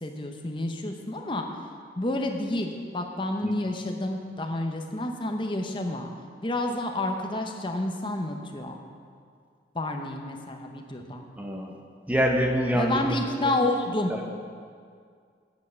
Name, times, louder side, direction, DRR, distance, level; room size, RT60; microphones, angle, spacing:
voice 1, 0.0-1.5 2.0-6.1 6.4-8.8 9.7-11.2 12.7-14.1, left 1 dB, 25° left, 3 dB, 0.7 m, -29 dB
voice 2, 11.4-11.7 12.1-13.1 14.1-14.2, equal, 10° right, 1 dB, 0.8 m, -25 dB
8.3 x 5.3 x 7.8 m, 2.1 s
head